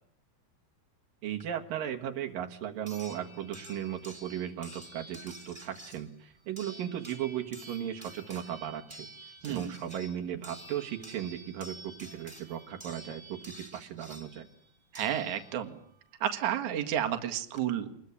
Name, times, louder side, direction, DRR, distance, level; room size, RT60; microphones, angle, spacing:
voice 1, 1.2-9.1 9.5-14.5, right 10 dB, 75° right, 3 dB, 3.2 m, -36 dB
sound 1, 1.4-1.5 2.9-15.9 17.1-17.2 17.5-17.6, right 1 dB, 5° right, 4.9 m, -50 dB
voice 2, 14.9-15.8 16.2-17.9, right 10 dB, 60° right, 6 dB, 3.0 m, -31 dB
27.0 x 21.5 x 9.8 m, 0.67 s
omnidirectional pair, 4.1 m